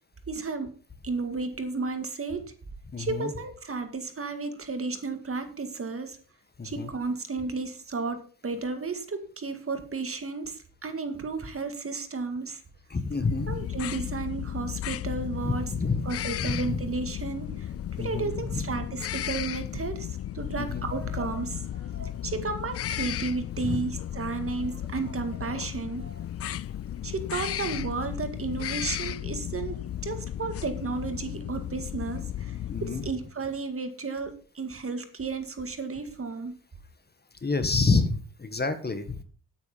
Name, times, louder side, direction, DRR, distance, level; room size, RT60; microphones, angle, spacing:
voice 1, 0.3-0.7 1.0-2.5 3.0-6.2 6.6-12.6 13.5-15.7 16.1-17.7 18.0-26.3 27.0-36.5, right 4 dB, 35° right, 8 dB, 2.0 m, -33 dB
voice 2, 2.9-3.3 6.6-6.9 12.9-13.7 15.4-16.1 16.4-16.8 18.0-18.8 20.6-20.8 23.6-23.9 32.7-33.0 37.4-39.2, left 3 dB, 25° left, 10 dB, 1.7 m, -28 dB
sound 1, 13.2-33.1, left 11 dB, 40° left, 0.4 m, -34 dB
9.5 x 9.0 x 5.1 m, 0.41 s
cardioid pair, 80°, 36 cm